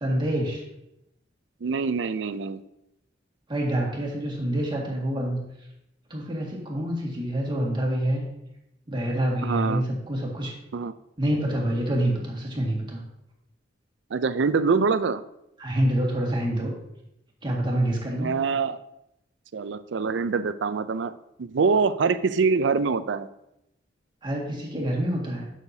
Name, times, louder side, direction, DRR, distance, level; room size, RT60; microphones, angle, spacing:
voice 1, 0.0-0.6 3.5-5.4 6.1-8.2 8.9-10.5 11.2-13.0 15.6-16.7 17.4-18.3 24.2-25.5, right 1 dB, 25° right, -2 dB, 1.9 m, -26 dB
voice 2, 1.6-2.6 9.4-9.8 10.7-10.9 14.1-15.2 18.2-18.8 19.5-21.1 21.4-23.3, right 5 dB, 80° right, 13 dB, 0.4 m, -24 dB
11.5 x 6.6 x 2.7 m, 0.83 s
head